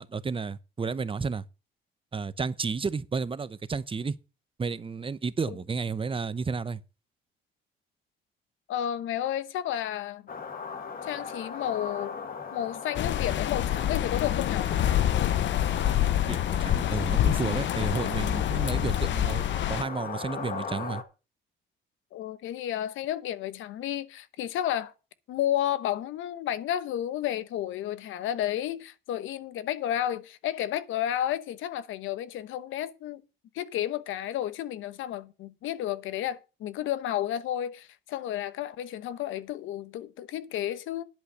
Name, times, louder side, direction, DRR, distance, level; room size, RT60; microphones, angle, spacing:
voice 1, 0.0-1.4 2.1-4.2 4.6-6.8 15.8-21.0, right 5 dB, 25° right, 0.8 m, -32 dB
voice 2, 8.7-10.3 11.0-12.2 12.5-14.7 22.1-24.9 25.3-33.2 33.5-41.0, left 11 dB, 85° left, 1.0 m, -32 dB
sound 1, 10.3-21.0, left 5 dB, 45° left, 2.0 m, -38 dB
sound 2, 12.9-19.8, left 12 dB, 70° left, 0.8 m, -26 dB
10.5 x 5.5 x 7.9 m
cardioid pair, 90°, 20 cm